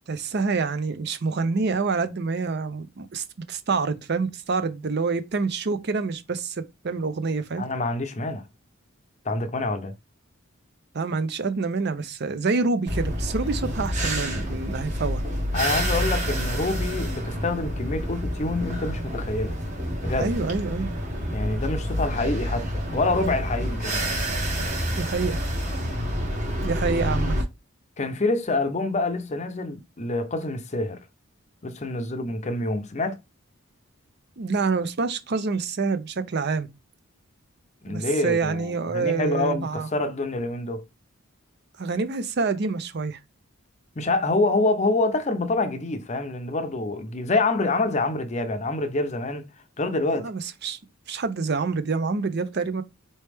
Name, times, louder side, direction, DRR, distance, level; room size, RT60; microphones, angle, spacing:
voice 1, 0.1-7.7 10.9-15.2 20.1-20.9 24.9-25.4 26.6-27.4 34.4-36.7 37.9-39.9 41.8-43.2 50.2-50.8 51.1-52.8, right 4 dB, 50° right, 0.6 m, -27 dB
voice 2, 7.6-8.4 9.3-9.9 15.5-19.6 20.0-20.3 21.3-24.1 28.0-31.0 31.6-33.2 37.8-40.8 44.0-49.4 49.8-50.3, left 2 dB, 35° left, 0.6 m, -26 dB
sound 1, 12.9-27.4, equal, 35° right, 1.1 m, -28 dB
4.3 x 3.0 x 3.4 m
head